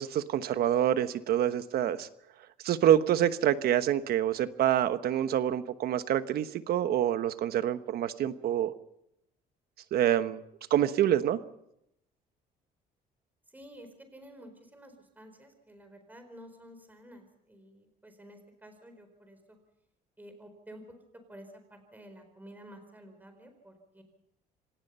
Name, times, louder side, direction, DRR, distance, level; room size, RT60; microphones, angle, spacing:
voice 1, 0.0-2.1 2.6-8.7 9.9-10.4 10.7-11.4, right 11 dB, 65° right, 12 dB, 1.2 m, -26 dB
voice 2, 13.5-19.6 20.2-20.8 21.3-24.0, equal, 10° right, 6 dB, 4.4 m, -51 dB
27.0 x 18.0 x 5.6 m, 0.81 s
cardioid pair, 110°, 17 cm